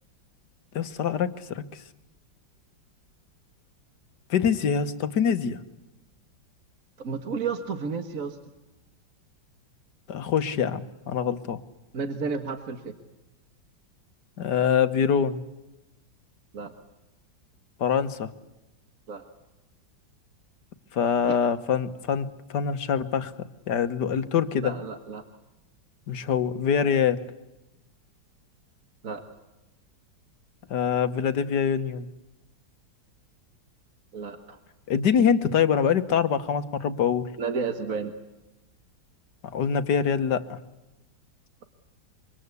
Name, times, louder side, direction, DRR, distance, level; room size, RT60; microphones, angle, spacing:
voice 1, 0.7-1.8 4.3-5.6 10.1-11.6 14.4-15.4 17.8-18.3 20.9-23.3 23.7-24.7 26.1-27.2 30.7-32.1 34.9-37.3 39.5-40.6, left 7 dB, 65° left, 11 dB, 1.7 m, -24 dB
voice 2, 7.0-8.4 11.9-12.9 16.5-16.7 19.1-19.2 21.3-21.4 24.6-25.2 29.0-29.2 34.1-34.6 37.4-38.1, right 5 dB, 50° right, 8 dB, 1.8 m, -32 dB
26.0 x 25.0 x 8.3 m, 0.98 s
omnidirectional pair, 2.0 m